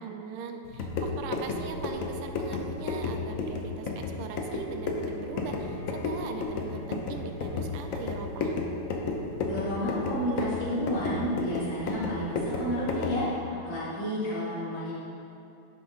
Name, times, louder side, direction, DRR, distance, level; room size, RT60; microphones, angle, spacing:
voice 1, 0.0-8.6, right 5 dB, 80° right, 5 dB, 1.6 m, -40 dB
sound 1, 0.6-13.3, left 3 dB, 90° left, 0.7 m, -33 dB
Bowed string instrument, 5.0-10.3, equal, 25° left, 1.0 m, -49 dB
voice 2, 9.4-14.9, equal, 40° left, -10 dB, 2.4 m, -31 dB
10.5 x 5.3 x 3.8 m, 2.7 s
omnidirectional pair, 2.4 m